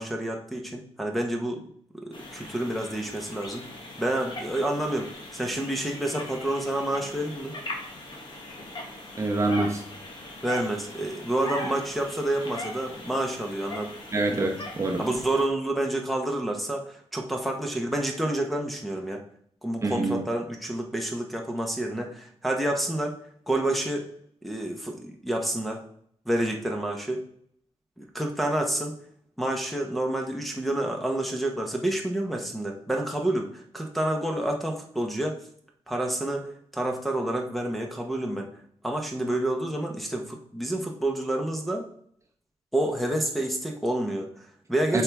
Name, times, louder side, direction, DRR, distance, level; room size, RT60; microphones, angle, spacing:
voice 1, 0.0-1.6 1.9-3.6 4.0-7.6 10.4-13.9 14.3-14.5 15.0-19.2 19.6-23.1 23.5-24.1 24.4-25.8 26.3-27.2 28.0-29.0 29.4-35.4 35.9-38.5 38.8-41.8 42.7-45.0, right 1 dB, ahead, 0 dB, 1.0 m, -29 dB
sound 1, 2.1-15.5, left 1 dB, 45° left, 1.6 m, -40 dB
voice 2, 9.2-9.8 14.1-15.0 19.8-20.2 44.9-45.0, right 2 dB, 25° right, 1 dB, 0.9 m, -26 dB
7.8 x 4.7 x 3.5 m, 0.64 s
wide cardioid pair, 120°, 11 cm